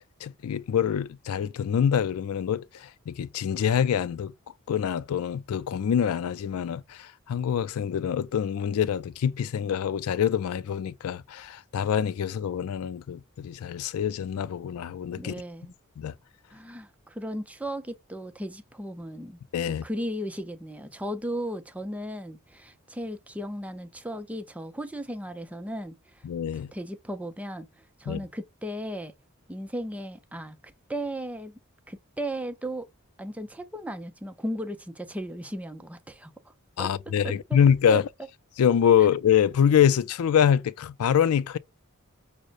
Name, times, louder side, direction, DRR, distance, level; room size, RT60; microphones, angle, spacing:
voice 1, 0.2-4.3 4.7-15.3 16.0-16.1 19.5-19.8 26.2-26.7 28.1-28.2 36.8-38.0 38.6-41.6, left 8 dB, 85° left, 0.4 m, -25 dB
voice 2, 15.2-15.7 16.5-19.4 19.7-26.2 26.5-29.1 29.5-31.6 31.9-32.9 33.2-36.5 36.8-36.9 37.2-37.6 37.9-38.0, equal, 5° right, 0.5 m, -36 dB
6.2 x 2.1 x 2.5 m
head